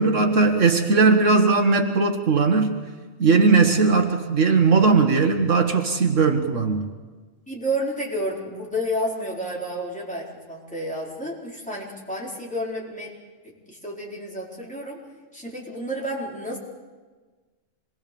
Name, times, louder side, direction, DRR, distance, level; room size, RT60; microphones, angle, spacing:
voice 1, 0.0-2.7 3.2-6.9, right 4 dB, 70° right, 5 dB, 1.8 m, -18 dB
voice 2, 7.5-13.1 13.7-15.0 15.3-16.6, equal, 5° left, -4 dB, 4.5 m, -30 dB
26.5 x 21.0 x 7.0 m, 1.4 s
omnidirectional pair, 1.3 m